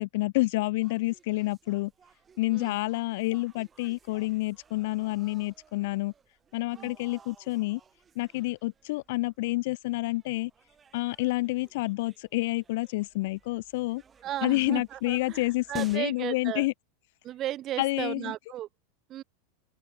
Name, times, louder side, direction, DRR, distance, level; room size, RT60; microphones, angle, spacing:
voice 1, 0.0-1.9 2.4-6.1 6.5-7.8 8.1-10.5 10.9-14.0 14.4-16.7 17.8-18.3, left 21 dB, 60° left, 1.3 m, -29 dB
sound 1, 0.8-16.0, right 6 dB, 25° right, 6.7 m, -56 dB
voice 2, 14.2-16.7 17.2-18.7 19.1-19.2, right 13 dB, 40° right, 1.4 m, -35 dB
open air
hypercardioid pair, 90°, 0 cm